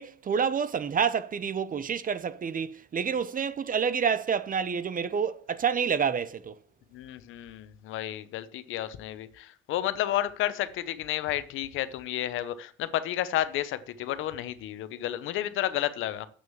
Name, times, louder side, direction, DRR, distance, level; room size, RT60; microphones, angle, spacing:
voice 1, 0.0-6.5, right 7 dB, 45° right, 0.8 m, -28 dB
voice 2, 6.9-16.3, left 13 dB, 90° left, 0.9 m, -31 dB
8.1 x 6.4 x 7.2 m
cardioid pair, 90°, 20 cm